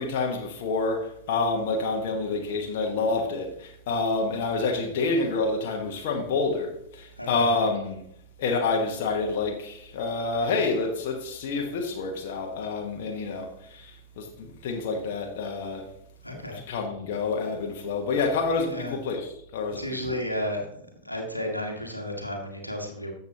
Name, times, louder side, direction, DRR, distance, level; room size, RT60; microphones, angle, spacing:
voice 1, 0.0-8.0 8.4-13.9 14.2-15.9 16.3-20.0, left 3 dB, 50° left, 1.4 m, -28 dB
voice 2, 7.2-7.5 16.2-16.6 18.7-18.9 19.8-20.6 21.0-23.1, equal, 90° left, 1.5 m, -32 dB
13.5 x 7.1 x 2.9 m
figure-of-eight pair, 90°, 0 cm